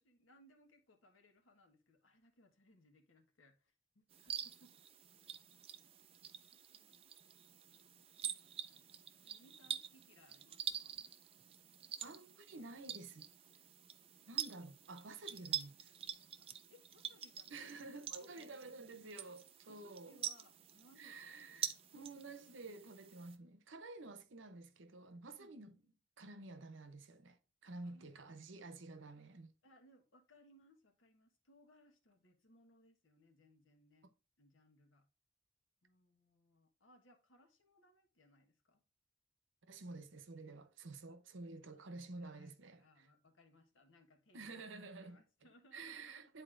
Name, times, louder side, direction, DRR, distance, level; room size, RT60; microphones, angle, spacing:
voice 1, 0.0-4.7 8.7-8.8 9.2-11.0 16.7-17.7 18.2-18.8 19.7-22.1 25.4-25.8 27.8-28.1 29.6-34.1 34.4-35.0 35.8-38.8 41.1-41.2 41.7-44.6 45.0-46.2, left 1 dB, 90° left, 1.3 m, -68 dB
sound 1, 4.1-23.4, right 9 dB, 30° right, 0.4 m, -47 dB
voice 2, 12.0-13.3 14.3-15.9 17.5-20.2 21.0-25.8 26.2-27.4 27.6-29.5 39.7-43.1 44.3-45.2 45.7-46.4, right 3 dB, 80° right, 0.8 m, -51 dB
9.9 x 4.2 x 2.5 m
head